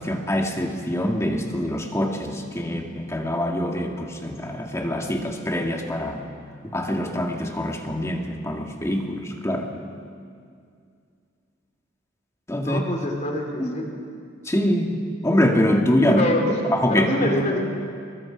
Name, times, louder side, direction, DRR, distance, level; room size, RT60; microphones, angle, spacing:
voice 1, 0.0-6.2 6.6-9.7 12.5-12.8 13.6-13.7 14.5-15.0 15.2-16.2 16.7-17.4, left 1 dB, 15° left, 2 dB, 1.9 m, -24 dB
voice 2, 12.6-13.9 16.1-16.6 16.9-17.6, left 1 dB, 35° left, 2 dB, 3.2 m, -25 dB
27.0 x 22.5 x 5.1 m, 2.3 s
head